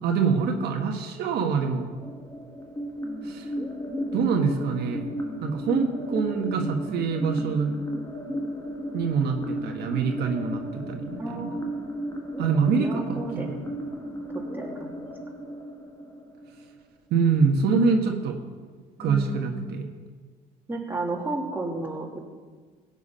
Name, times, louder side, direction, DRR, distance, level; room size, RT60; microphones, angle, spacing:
voice 1, 0.0-1.9 3.2-3.5 4.1-5.1 5.4-7.8 8.9-11.6 12.4-13.6 17.1-18.4 19.0-19.8, right 5 dB, 75° right, 3 dB, 1.4 m, -25 dB
sound 1, 1.9-16.9, equal, 20° left, 1.6 m, -34 dB
voice 2, 11.2-11.6 12.8-13.5 14.5-15.0 19.0-19.6 20.7-22.2, right 2 dB, 10° right, -1 dB, 2.5 m, -32 dB
17.0 x 8.2 x 5.6 m, 1.5 s
cardioid pair, 110°, 17 cm